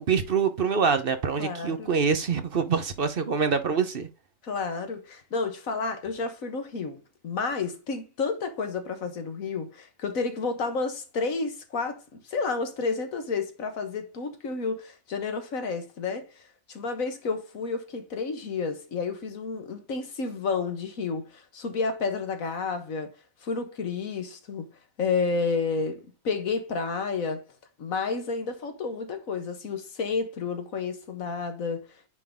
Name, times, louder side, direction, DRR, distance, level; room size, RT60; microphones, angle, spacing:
voice 1, 0.0-4.1, right 6 dB, 50° right, 0.9 m, -25 dB
voice 2, 1.4-1.9 4.4-16.4 16.7-23.1 23.4-24.7 25.0-27.4 27.8-31.9, left 4 dB, 90° left, 1.7 m, -31 dB
9.2 x 3.9 x 3.6 m
omnidirectional pair, 1.4 m